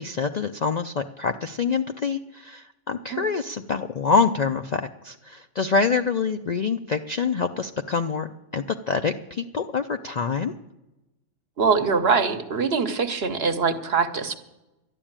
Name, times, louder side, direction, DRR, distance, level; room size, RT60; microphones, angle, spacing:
voice 1, 0.0-8.3 8.5-10.5, left 5 dB, 55° left, 7 dB, 0.5 m, -26 dB
voice 2, 11.6-14.3, right 5 dB, 55° right, 7 dB, 1.2 m, -23 dB
12.0 x 9.9 x 8.8 m, 0.98 s
omnidirectional pair, 1.3 m